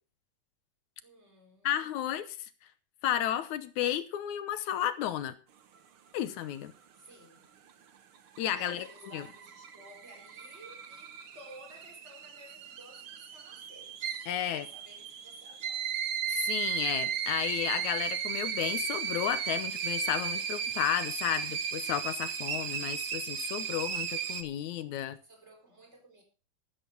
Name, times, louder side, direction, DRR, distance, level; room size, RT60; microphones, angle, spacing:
voice 1, 1.0-1.9 6.9-7.5 8.2-16.0 25.2-26.2, right 1 dB, 20° right, 4.8 m, -55 dB
voice 2, 1.6-2.4 3.0-5.4 6.1-6.7 8.4-8.9 9.1-9.2 14.3-14.7 16.3-25.2, left 11 dB, 75° left, 2.2 m, -32 dB
sound 1, 8.2-24.4, right 8 dB, 55° right, 1.7 m, -35 dB
13.5 x 12.5 x 3.9 m
omnidirectional pair, 3.6 m